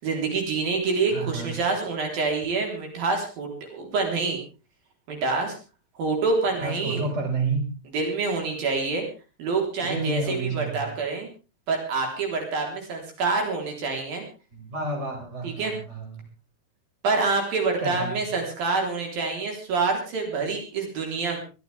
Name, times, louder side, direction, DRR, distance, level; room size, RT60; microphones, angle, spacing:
voice 1, 0.0-4.4 5.1-5.6 6.0-7.0 7.9-9.1 9.4-11.3 11.7-14.2 15.4-15.7 17.0-21.4, right 4 dB, 70° right, 2 dB, 5.6 m, -26 dB
voice 2, 1.1-1.5 6.6-7.6 9.8-10.9 14.5-16.2 17.8-18.4, right 3 dB, 15° right, 2 dB, 5.1 m, -30 dB
23.5 x 15.0 x 3.5 m, 0.33 s
omnidirectional pair, 4.3 m